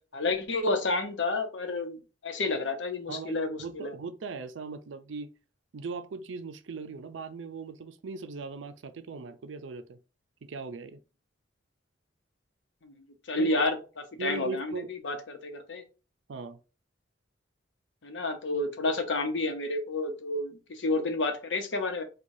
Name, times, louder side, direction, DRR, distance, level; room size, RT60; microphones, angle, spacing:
voice 1, 0.1-3.9 12.8-12.9 13.3-13.8 14.2-15.8 18.0-22.0, left 2 dB, 70° left, 0.8 m, -30 dB
voice 2, 3.1-5.3 5.7-10.0 10.4-11.0 13.4-13.6 14.2-14.9 16.3-16.6, right 4 dB, 85° right, 0.5 m, -39 dB
4.7 x 2.3 x 2.6 m
head